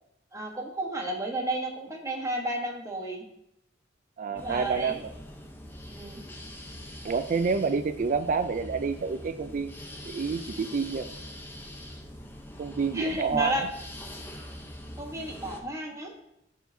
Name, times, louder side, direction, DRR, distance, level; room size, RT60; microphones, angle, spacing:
voice 1, 0.3-3.3 4.3-5.0 5.9-6.2 12.9-13.7 15.0-16.1, right 1 dB, 15° right, 0 dB, 1.2 m, -32 dB
voice 2, 4.2-5.1 7.0-9.7 10.1-11.1 12.6-13.5, right 5 dB, 45° right, 10 dB, 0.3 m, -28 dB
sound 1, 4.4-15.6, left 1 dB, 10° left, 0.8 m, -43 dB
13.5 x 4.5 x 2.7 m, 0.81 s
head